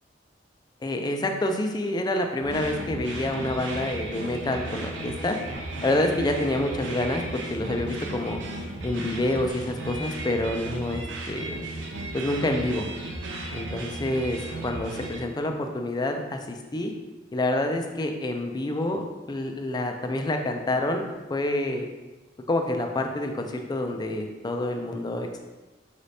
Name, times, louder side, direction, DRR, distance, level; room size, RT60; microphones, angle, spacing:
voice 1, 0.8-5.4 5.8-8.4 8.8-11.7 12.1-12.9 13.5-16.9 17.3-21.9 22.5-25.4, left 1 dB, 25° left, 4 dB, 0.4 m, -28 dB
sound 1, 2.4-15.2, right 2 dB, 80° right, 0.6 m, -35 dB
5.0 x 3.2 x 2.7 m, 1.2 s
head